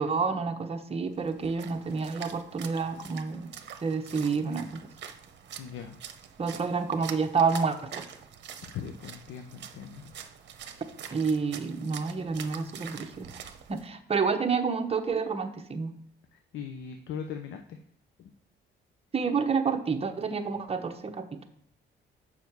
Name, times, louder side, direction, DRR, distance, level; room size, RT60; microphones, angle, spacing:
voice 1, 0.0-3.5 3.8-4.9 6.4-8.0 11.1-13.3 13.7-15.9 19.1-21.4, right 5 dB, 30° right, 5 dB, 1.0 m, -29 dB
Splash splatter, 1.1-13.9, right 8 dB, 60° right, 0.9 m, -45 dB
voice 2, 5.6-6.0 8.6-10.1 16.3-17.8 18.2-18.3, left 7 dB, 75° left, 7 dB, 0.7 m, -40 dB
7.1 x 5.7 x 4.7 m, 0.66 s
cardioid pair, 90°, 20 cm